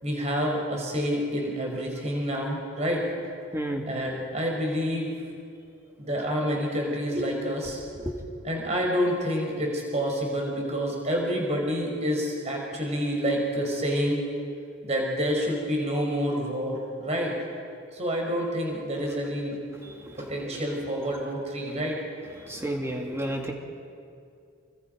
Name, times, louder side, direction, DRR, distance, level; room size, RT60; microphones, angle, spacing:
voice 1, 0.0-3.2 3.9-5.1 6.0-7.8 8.4-14.3 14.8-17.4 17.9-19.5 20.2-22.0, equal, 30° right, 0 dB, 4.9 m, -28 dB
voice 2, 3.5-3.8 7.2-7.3 8.0-8.1 19.8-20.0 22.4-23.5, right 1 dB, 15° right, 1 dB, 2.6 m, -31 dB
29.0 x 24.0 x 5.3 m, 2.3 s
head